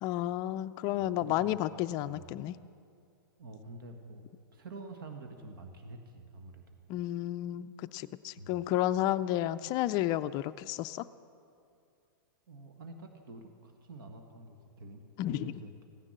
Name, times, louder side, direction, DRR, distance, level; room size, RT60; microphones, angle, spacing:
voice 1, 0.0-2.6 6.9-11.1 15.2-15.5, left 14 dB, 35° left, 13 dB, 0.4 m, -32 dB
voice 2, 1.0-1.6 2.0-2.3 3.4-4.2 4.5-6.8 8.4-8.6 12.5-15.7, right 2 dB, 70° right, 5 dB, 1.5 m, -47 dB
15.5 x 10.0 x 7.3 m, 2.4 s
hypercardioid pair, 115°, 12 cm